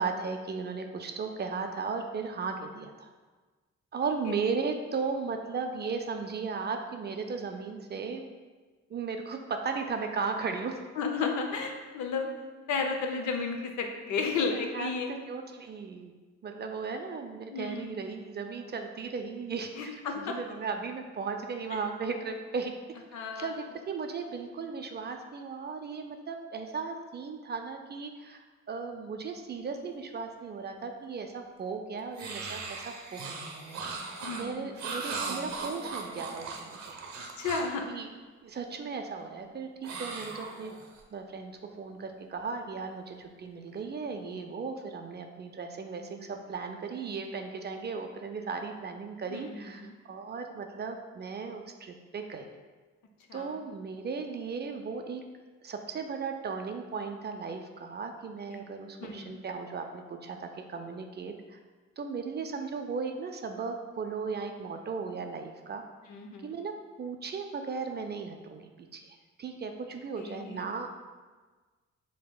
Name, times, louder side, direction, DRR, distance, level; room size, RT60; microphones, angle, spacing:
voice 1, 0.0-3.1 3.9-8.3 8.9-10.8 14.7-16.1 16.4-33.4 34.3-37.0 37.9-38.1 38.4-40.7 41.1-52.5 53.3-55.2 55.6-61.6 62.0-65.8 66.4-66.7 67.0-70.9, right 5 dB, 35° right, 5 dB, 0.4 m, -36 dB
voice 2, 11.0-12.3 12.7-15.1 17.5-17.9 19.7-20.4 23.1-23.6 34.2-34.7 37.2-37.8 49.3-49.9 53.3-53.5 58.5-58.6 59.0-59.4 66.1-66.6 70.2-70.7, left 5 dB, 75° left, 3 dB, 0.6 m, -33 dB
sound 1, 32.2-37.8 39.8-41.0, right 4 dB, 65° right, 0.7 m, -38 dB
5.3 x 3.5 x 2.2 m, 1.4 s
cardioid pair, 90°, 30 cm